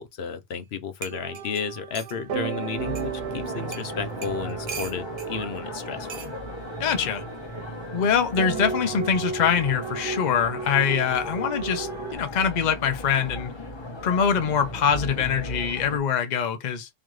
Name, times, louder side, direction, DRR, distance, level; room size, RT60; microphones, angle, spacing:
voice 1, 0.0-6.1, left 6 dB, 85° left, 1.0 m, -33 dB
sound 1, 0.6-0.7 1.0-2.2 3.0-3.1 3.7-3.9 4.2-5.3 6.1-6.3 7.4-7.7, right 5 dB, 45° right, 0.6 m, -39 dB
sound 2, 1.1-12.2, right 6 dB, 75° right, 0.9 m, -35 dB
sound 3, 2.8-16.0, left 1 dB, 30° left, 1.0 m, -37 dB
voice 2, 6.8-7.2 7.9-13.5 14.0-16.9, left 7 dB, 50° left, 0.8 m, -24 dB
3.7 x 3.1 x 3.1 m
omnidirectional pair, 1.0 m